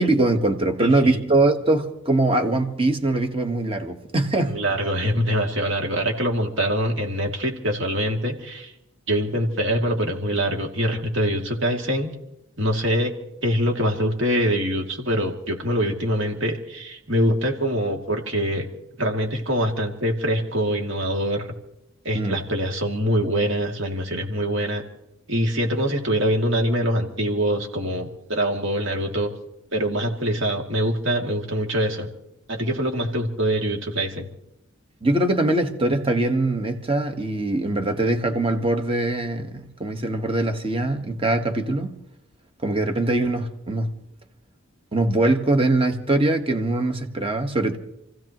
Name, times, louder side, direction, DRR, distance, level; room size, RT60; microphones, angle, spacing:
voice 1, 0.0-4.6 22.1-22.4 35.0-41.9 42.6-43.9 44.9-47.8, right 2 dB, 25° right, 1.4 m, -22 dB
voice 2, 0.8-1.2 4.5-8.7 9.1-12.1 12.6-13.1 13.4-18.7 19.0-21.5 22.0-24.8 25.3-29.3 29.7-32.1 32.5-34.3, equal, 65° right, 2.6 m, -24 dB
29.0 x 15.5 x 3.0 m
head